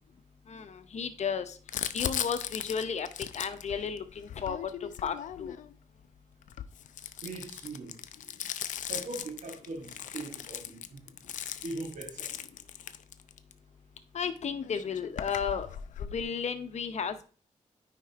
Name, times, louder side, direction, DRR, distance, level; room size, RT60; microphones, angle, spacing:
voice 1, 0.5-1.6 1.9-3.1 3.3-5.5 14.1-15.7 16.1-17.2, left 6 dB, 65° left, 0.8 m, -33 dB
Crumpling crinkling, 1.7-5.7 6.4-13.5 14.4-14.5 14.6-16.2, left 10 dB, 90° left, 0.4 m, -38 dB
voice 2, 7.2-7.9 8.9-11.1 11.6-12.3, right 2 dB, 75° right, 1.8 m, -40 dB
9.0 x 5.2 x 2.9 m
cardioid pair, 75°, 13 cm